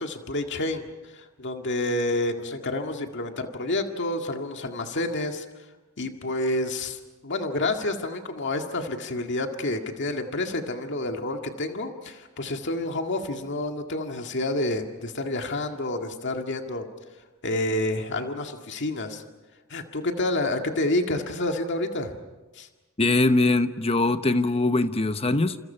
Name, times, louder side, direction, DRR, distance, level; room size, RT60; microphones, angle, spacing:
voice 1, 0.0-5.5 6.0-16.9 17.4-19.2 19.7-22.1 22.5-22.7, left 2 dB, 55° left, 4 dB, 2.0 m, -29 dB
voice 2, 23.0-25.6, left 2 dB, 25° left, 10 dB, 1.0 m, -22 dB
29.5 x 28.0 x 5.7 m, 1.2 s
head